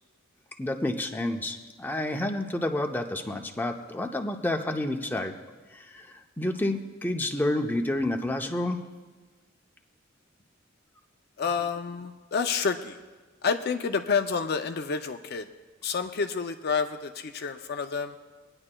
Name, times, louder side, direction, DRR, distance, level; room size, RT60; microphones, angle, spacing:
voice 1, 0.6-5.3 5.7-6.1 6.4-8.8, left 1 dB, 10° left, 3 dB, 0.6 m, -29 dB
voice 2, 11.4-13.0 13.4-15.5 15.8-18.2, left 5 dB, 50° left, 7 dB, 0.4 m, -29 dB
24.0 x 9.7 x 2.2 m, 1.3 s
head